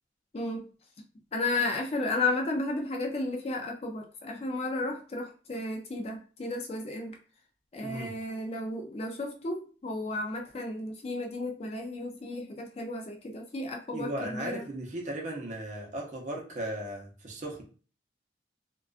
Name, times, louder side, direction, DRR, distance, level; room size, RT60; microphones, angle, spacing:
voice 1, 1.3-7.1 7.7-14.6, left 2 dB, 35° left, 2 dB, 0.4 m, -33 dB
voice 2, 7.8-8.2 13.9-17.6, right 1 dB, 40° right, 0 dB, 0.6 m, -36 dB
2.4 x 2.2 x 2.4 m, 0.38 s
head